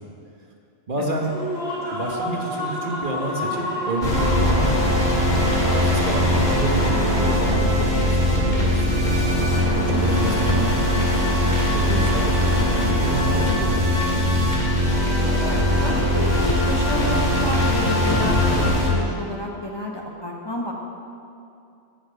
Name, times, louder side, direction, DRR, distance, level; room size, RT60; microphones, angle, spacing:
voice 1, 0.9-1.4 1.9-5.0 5.6-9.1 9.7-13.9, right 2 dB, 45° right, 1 dB, 1.5 m, -29 dB
Human voice / Cheering / Applause, 1.1-8.7, left 1 dB, 80° left, 4.2 m, -31 dB
sound 1, 4.0-18.9, left 1 dB, 40° left, 2.6 m, -20 dB
voice 2, 9.9-10.3 15.4-20.7, left 1 dB, 25° left, -1 dB, 1.0 m, -31 dB
10.5 x 7.4 x 8.8 m, 2.6 s
omnidirectional pair, 1.2 m